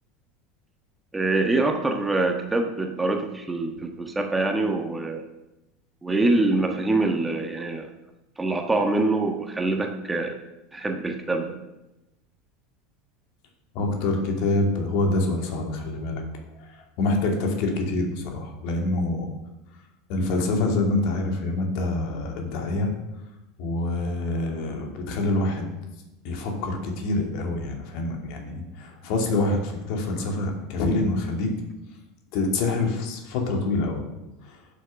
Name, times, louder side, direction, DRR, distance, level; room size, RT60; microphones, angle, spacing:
voice 1, 1.1-5.3 6.0-7.9 8.4-10.4 10.7-11.6, right 2 dB, 10° right, 4 dB, 1.4 m, -25 dB
voice 2, 13.7-16.2 16.7-19.3 20.1-22.9 23.6-25.7 26.2-31.5 32.3-34.1 34.5-34.6, left 2 dB, 50° left, 2 dB, 2.7 m, -26 dB
11.5 x 7.5 x 6.6 m, 0.97 s
figure-of-eight pair, 75°, 0 cm